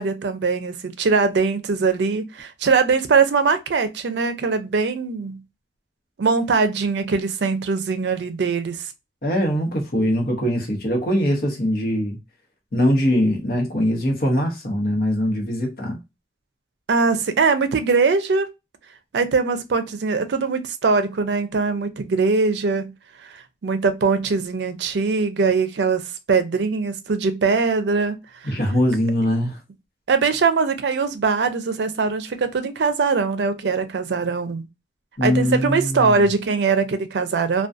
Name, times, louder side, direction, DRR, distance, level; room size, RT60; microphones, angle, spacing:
voice 1, 0.0-5.4 6.2-8.8 16.9-18.5 19.1-22.9 23.6-26.0 26.3-28.1 28.4-28.5 30.1-34.7 35.2-37.7, right 4 dB, 75° right, 0.4 m, -21 dB
voice 2, 9.2-12.2 12.7-16.0 28.4-29.6 35.2-36.3, equal, 55° left, 0.8 m, -22 dB
2.4 x 2.2 x 2.5 m
head